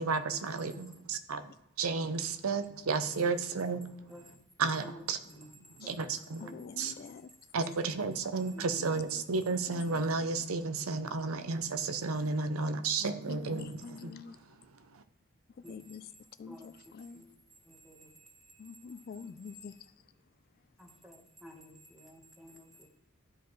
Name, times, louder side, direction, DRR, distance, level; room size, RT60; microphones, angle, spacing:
voice 1, 0.0-1.4 1.8-3.8 4.6-5.2 5.8-6.5 6.8-6.9 7.5-14.1 14.9-15.0, right 4 dB, 75° right, 0.6 m, -32 dB
voice 2, 6.4-7.3 8.8-9.2 9.7-10.1 13.3-14.4 15.7-16.1 16.4-17.2 18.6-19.7, left 5 dB, 45° left, 0.3 m, -46 dB
voice 3, 7.7-8.2 8.5-8.9 15.6-15.7 16.5-16.7 17.1-17.2 17.7-18.1 20.8-22.9, equal, ahead, 1.1 m, -51 dB
12.5 x 4.6 x 3.1 m
head